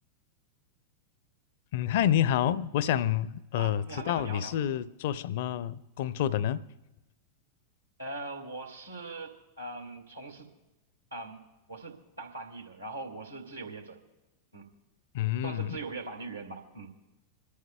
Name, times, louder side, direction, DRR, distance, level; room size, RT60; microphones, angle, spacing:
voice 1, 1.7-6.6 15.1-15.8, left 11 dB, 55° left, 0.5 m, -28 dB
voice 2, 3.5-4.5 8.0-10.5 11.1-11.4 11.7-14.0 14.5-14.7 15.4-16.9, right 2 dB, 85° right, 2.1 m, -41 dB
26.5 x 13.0 x 2.3 m
figure-of-eight pair, 90°, 0 cm